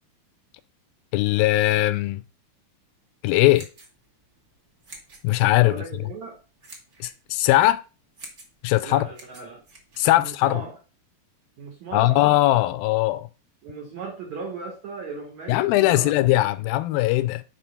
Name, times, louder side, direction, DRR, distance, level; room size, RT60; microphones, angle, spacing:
voice 1, 1.1-2.2 3.2-3.7 5.2-5.8 7.0-7.8 8.6-9.1 10.0-10.6 11.9-13.3 15.5-17.4, left 16 dB, 80° left, 2.2 m, -20 dB
sound 1, 3.4-10.6, right 2 dB, 35° right, 1.7 m, -49 dB
voice 2, 5.6-6.4 8.8-9.6 10.2-10.7 11.6-12.2 13.6-16.2, right 4 dB, 65° right, 1.9 m, -37 dB
9.0 x 3.6 x 5.5 m
omnidirectional pair, 4.3 m